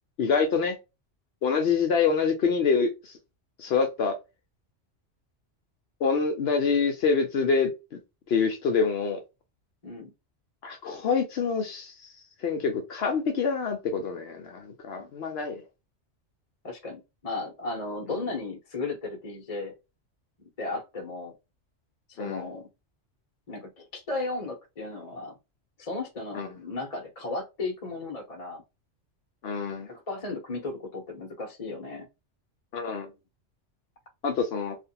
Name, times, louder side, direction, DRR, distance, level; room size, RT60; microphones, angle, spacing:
voice 1, 0.2-0.8 1.4-3.2 3.6-4.2 6.0-7.7 8.3-9.2 10.6-12.1 12.4-15.6 22.2-22.4 26.3-26.5 29.4-29.9 32.7-33.1 34.2-34.8, left 5 dB, 65° left, 0.8 m, -26 dB
voice 2, 16.6-19.7 20.6-21.3 22.1-22.7 23.5-25.4 25.8-28.6 29.9-32.0, left 3 dB, 35° left, 0.8 m, -35 dB
2.5 x 2.4 x 2.7 m
omnidirectional pair, 1.2 m